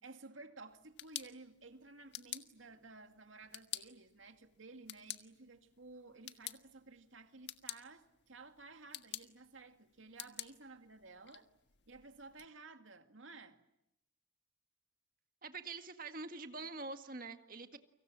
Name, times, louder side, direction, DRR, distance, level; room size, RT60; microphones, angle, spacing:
voice 1, 0.0-11.5 11.9-13.6, right 3 dB, 85° right, 2.4 m, -55 dB
sound 1, 0.7-12.5, left 12 dB, 60° left, 1.7 m, -51 dB
voice 2, 15.4-17.8, right 3 dB, 45° right, 1.8 m, -45 dB
30.0 x 25.5 x 7.5 m
head